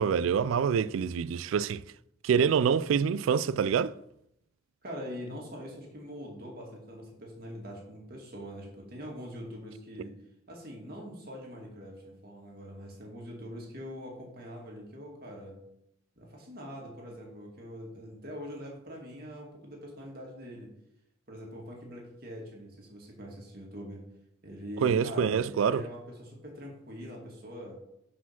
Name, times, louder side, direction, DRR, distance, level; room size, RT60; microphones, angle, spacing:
voice 1, 0.0-1.8 2.2-3.9 24.8-25.8, right 7 dB, 80° right, 0.3 m, -26 dB
voice 2, 4.8-10.2 10.5-15.6 16.2-20.7 21.3-24.0 24.4-27.8, equal, 50° right, 2.2 m, -43 dB
5.8 x 4.8 x 5.8 m
head